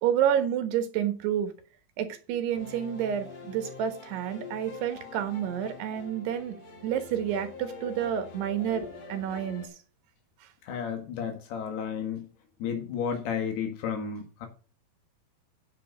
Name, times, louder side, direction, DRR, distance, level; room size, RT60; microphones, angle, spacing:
voice 1, 0.0-1.5 2.0-6.6 6.8-9.7, right 9 dB, 90° right, 3.5 m, -29 dB
sound 1, 2.5-9.7, left 5 dB, 45° left, 2.9 m, -44 dB
voice 2, 10.7-12.3 12.6-14.5, left 7 dB, 80° left, 3.6 m, -32 dB
10.0 x 6.7 x 5.2 m
omnidirectional pair, 4.6 m